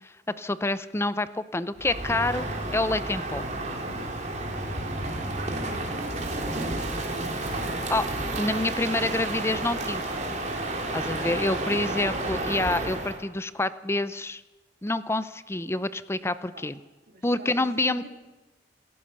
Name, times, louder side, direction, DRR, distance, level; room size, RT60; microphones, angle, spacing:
voice 1, 0.4-2.5 2.7-3.4 7.9-8.1 8.4-10.0 10.9-14.4 14.8-16.7 17.2-18.1, left 2 dB, 15° left, 14 dB, 0.6 m, -27 dB
Crow, 1.8-13.2, right 2 dB, 40° right, 3.5 m, -31 dB
voice 2, 5.4-7.2 16.5-16.6 17.1-18.1, right 1 dB, 55° right, 1 dB, 4.2 m, -45 dB
28.0 x 14.5 x 6.7 m, 1.1 s
head